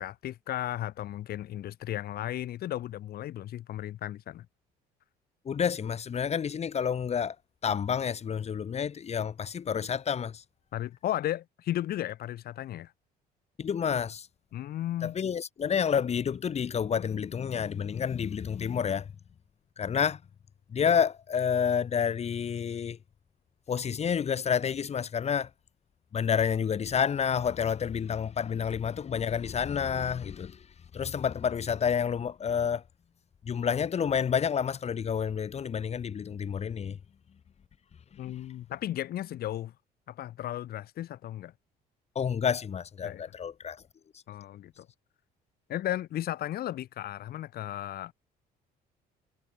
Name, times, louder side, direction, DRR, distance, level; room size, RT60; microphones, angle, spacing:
voice 1, 0.0-4.5 10.7-12.9 14.5-15.2 38.2-39.7 40.1-41.5 43.0-43.2 44.3-44.9 45.7-48.1, left 13 dB, 65° left, 2.7 m, -35 dB
voice 2, 5.5-7.4 7.6-10.4 13.6-14.3 15.0-19.1 19.8-20.2 20.7-23.0 23.7-25.5 26.1-30.6 30.9-32.8 33.5-37.0 42.2-43.8, left 7 dB, 40° left, 1.9 m, -29 dB
cardioid pair, 110°, 17 cm